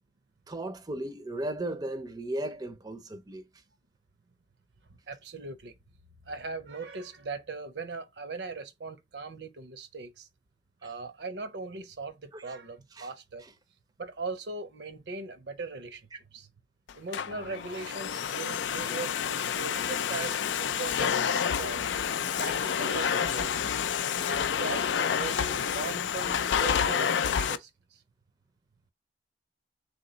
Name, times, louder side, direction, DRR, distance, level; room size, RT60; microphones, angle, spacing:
voice 1, 0.5-3.4 10.8-10.9 12.3-12.4 13.0-13.1 13.4-13.5, right 1 dB, 20° right, 0.5 m, -36 dB
voice 2, 4.9-5.7 6.3-10.3 10.8-13.5 14.0-16.5 16.9-21.8 22.4-23.6 24.3-28.0, right 3 dB, 65° right, 0.6 m, -39 dB
Domestic sounds home sounds, 16.9-27.6, left 7 dB, 85° left, 0.4 m, -29 dB
3.7 x 2.9 x 3.9 m
head